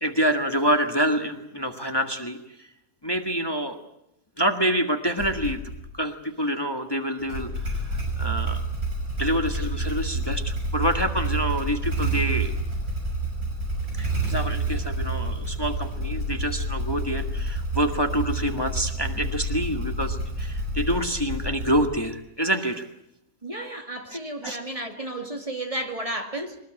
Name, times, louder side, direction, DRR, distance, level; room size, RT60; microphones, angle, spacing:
voice 1, 0.0-2.4 3.0-3.8 4.4-5.6 5.9-8.6 9.2-12.5 14.0-22.8 24.1-24.2 24.4-24.6, equal, 15° left, 1.6 m, -27 dB
Motorcycle / Engine starting, 5.2-5.8 7.2-22.1, right 2 dB, 65° right, 7.1 m, -29 dB
voice 2, 23.4-26.6, right 1 dB, 20° right, 2.2 m, -32 dB
22.5 x 20.0 x 8.9 m
omnidirectional pair, 1.7 m